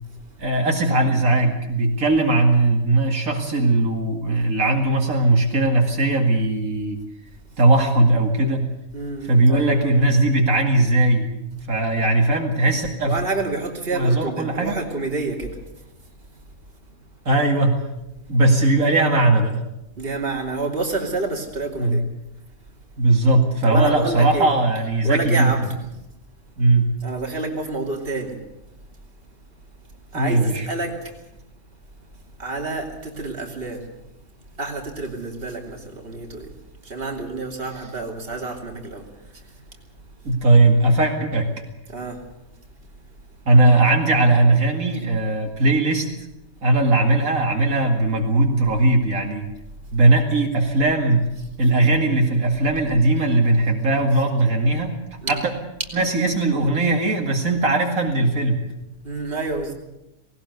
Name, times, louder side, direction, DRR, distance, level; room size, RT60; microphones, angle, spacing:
voice 1, 0.4-7.0 7.6-8.7 9.2-13.2 13.9-14.7 17.3-17.7 18.3-19.5 21.8-22.0 23.0-25.5 26.6-26.9 30.1-30.7 40.2-41.5 43.5-46.1 46.6-49.5 49.9-51.2 51.6-54.9 55.3-55.4 55.9-58.6, right 2 dB, 75° right, 2 dB, 2.7 m, -19 dB
voice 2, 8.9-10.0 13.1-15.6 20.0-22.0 23.6-24.5 25.0-25.8 27.0-28.4 30.1-31.2 32.4-33.9 34.6-36.5 36.8-39.6 41.9-42.2 55.2-55.4 59.0-59.7, right 3 dB, 40° right, 1 dB, 3.1 m, -28 dB
19.0 x 18.5 x 8.2 m, 0.89 s
omnidirectional pair, 1.5 m